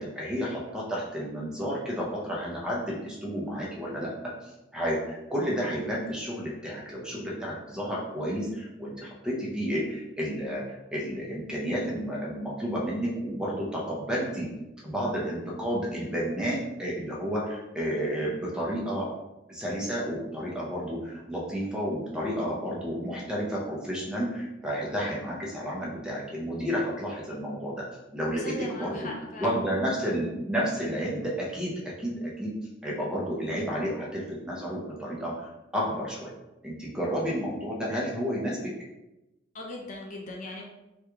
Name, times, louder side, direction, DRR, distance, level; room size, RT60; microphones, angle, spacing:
voice 1, 0.0-4.1 4.4-10.6 10.9-14.5 14.8-19.1 19.5-27.8 28.1-29.1 29.4-32.5 32.8-36.3 36.6-38.7, equal, 5° right, -5 dB, 0.6 m, -31 dB
voice 2, 28.3-29.6 39.5-40.6, left 1 dB, 40° left, -1 dB, 0.5 m, -39 dB
3.4 x 2.3 x 3.0 m, 0.96 s
head